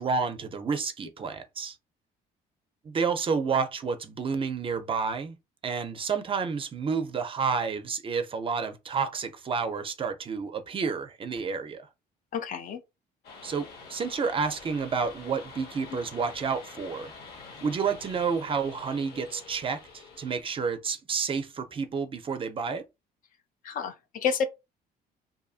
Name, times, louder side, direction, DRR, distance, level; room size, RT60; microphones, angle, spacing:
voice 1, 0.0-1.8 2.8-5.4 5.6-11.8 13.4-17.1 17.6-22.8, right 5 dB, 30° right, 0.4 m, -30 dB
voice 2, 12.3-12.8 23.6-24.5, left 6 dB, 55° left, 0.5 m, -29 dB
sound 1, 13.2-20.4, left 4 dB, 70° left, 0.9 m, -47 dB
2.6 x 2.5 x 2.4 m
cardioid pair, 110°, 17 cm